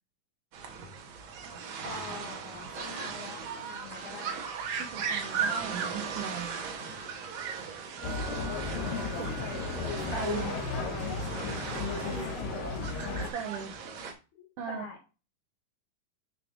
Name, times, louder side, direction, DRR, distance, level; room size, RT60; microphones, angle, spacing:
sound 1, 0.5-14.1, right 6 dB, 65° right, 1.9 m, -38 dB
voice 1, 1.8-4.4 9.1-9.7 12.0-12.6 14.4-15.0, left 4 dB, 65° left, 1 dB, 3.3 m, -44 dB
Harmonica, 3.4-10.0, right 7 dB, 45° right, 3.9 m, -46 dB
voice 2, 4.8-6.5 10.1-10.6 13.2-13.7 14.6-14.8, right 7 dB, 85° right, 4 dB, 1.3 m, -38 dB
sound 2, 8.0-13.3, left 4 dB, 85° left, 2.9 m, -34 dB
6.8 x 6.7 x 2.5 m, 0.31 s
omnidirectional pair, 3.8 m